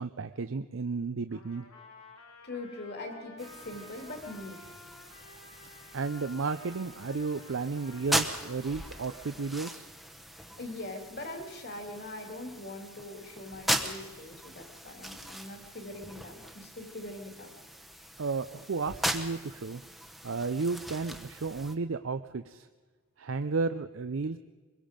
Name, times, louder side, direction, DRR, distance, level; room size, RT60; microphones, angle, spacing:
voice 1, 0.0-1.6 5.9-9.8 18.2-19.8 20.2-22.7 23.2-24.4, right 4 dB, 65° right, 9 dB, 0.5 m, -33 dB
Trumpet, 1.3-9.7, left 2 dB, 90° left, 3.0 m, -52 dB
voice 2, 2.4-4.6 10.6-17.5, left 2 dB, 50° left, 4 dB, 2.6 m, -42 dB
sound 1, 3.4-21.7, equal, ahead, 1.0 m, -39 dB
24.0 x 22.0 x 5.2 m, 1.4 s
head